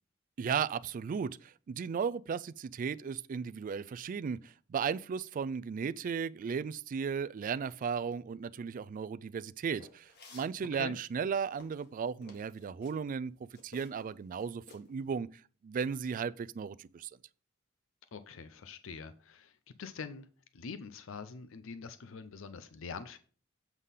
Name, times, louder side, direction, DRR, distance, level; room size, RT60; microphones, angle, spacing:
voice 1, 0.4-13.3 13.6-17.1, right 6 dB, 40° right, 0.3 m, -35 dB
sound 1, 9.8-10.6 11.2-13.0 13.6-14.1 14.4-14.9, left 3 dB, 50° left, 1.4 m, -54 dB
voice 2, 18.1-20.3 20.5-23.2, left 5 dB, 70° left, 0.5 m, -44 dB
8.2 x 3.7 x 5.5 m
head